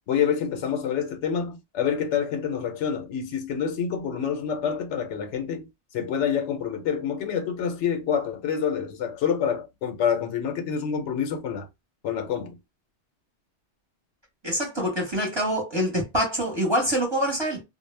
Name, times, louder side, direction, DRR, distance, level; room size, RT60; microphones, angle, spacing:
voice 1, 0.1-5.7 5.9-11.7 12.0-12.6, left 7 dB, 80° left, 0.9 m, -27 dB
voice 2, 14.4-17.6, equal, 25° right, 0.8 m, -25 dB
2.1 x 2.1 x 3.2 m
omnidirectional pair, 1.2 m